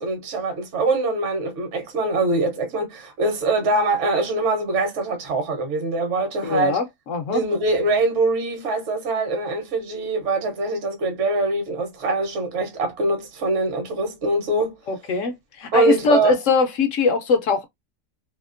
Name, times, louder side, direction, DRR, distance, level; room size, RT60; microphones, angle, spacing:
voice 1, 0.0-6.8 7.3-14.8 15.7-16.4, right 2 dB, 50° right, 1.1 m, -23 dB
voice 2, 6.4-7.4 14.9-17.6, left 4 dB, 65° left, 0.8 m, -21 dB
2.9 x 2.8 x 2.4 m
omnidirectional pair, 1.7 m